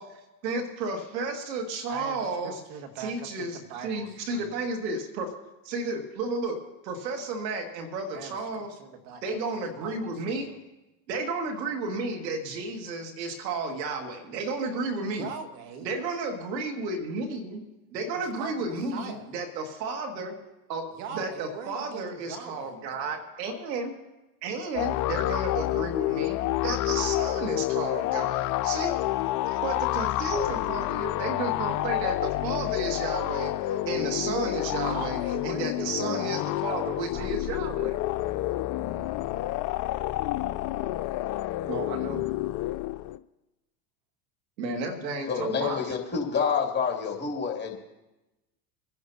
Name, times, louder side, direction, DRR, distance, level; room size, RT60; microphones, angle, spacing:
voice 1, 0.4-2.6 3.0-5.3 5.6-8.7 9.2-10.6 11.1-15.3 15.8-20.4 20.7-23.9 24.4-29.0 29.6-33.6 33.9-38.0 41.7-42.2 44.6-45.9, right 3 dB, 80° right, 3 dB, 2.2 m, -32 dB
voice 2, 1.9-4.6 8.1-9.4 9.7-10.6 15.2-15.9 18.2-19.3 21.0-23.2 29.2-29.7 30.0-30.1 34.8-37.4, right 6 dB, 65° right, 6 dB, 1.9 m, -42 dB
sound 1, 24.7-43.2, left 16 dB, 40° left, 0.5 m, -29 dB
voice 3, 45.3-47.7, left 6 dB, 20° left, 0 dB, 2.7 m, -28 dB
24.5 x 10.5 x 2.8 m, 1.0 s
hypercardioid pair, 95°, 50 cm